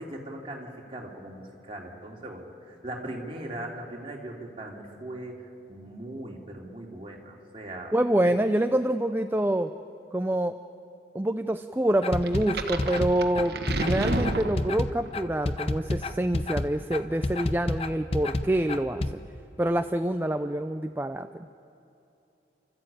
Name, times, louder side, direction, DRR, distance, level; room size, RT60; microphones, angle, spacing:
voice 1, 0.0-5.4 5.7-7.9 8.2-8.3, right 1 dB, 30° right, -1 dB, 2.8 m, -39 dB
voice 2, 7.9-9.7 10.1-10.6 11.1-19.1 19.6-21.3, right 1 dB, 10° right, 8 dB, 0.4 m, -26 dB
sound 1, 12.0-19.1, left 2 dB, 35° left, 0.7 m, -29 dB
sound 2, 12.3-15.1, right 2 dB, 60° right, 1.3 m, -31 dB
29.5 x 13.5 x 8.9 m, 2.6 s
head